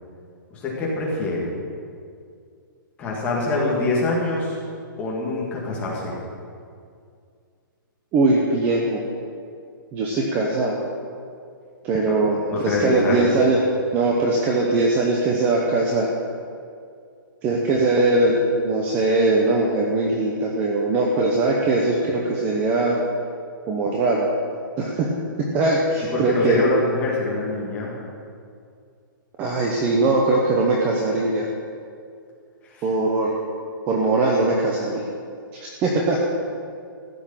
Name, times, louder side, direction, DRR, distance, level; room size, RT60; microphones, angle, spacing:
voice 1, 0.5-1.5 3.0-4.6 5.0-6.2 12.1-12.2 12.5-13.3 26.1-27.9 32.7-32.9, left 2 dB, 10° left, -4 dB, 2.1 m, -24 dB
voice 2, 8.1-9.0 9.9-10.8 11.8-13.7 13.9-16.1 17.4-23.0 23.7-24.2 24.8-25.1 25.5-26.6 29.4-31.5 32.8-33.4 33.9-35.0 35.5-36.2, right 2 dB, 15° right, -1 dB, 0.8 m, -21 dB
15.0 x 6.4 x 8.9 m, 2.3 s
hypercardioid pair, 180°, 11 cm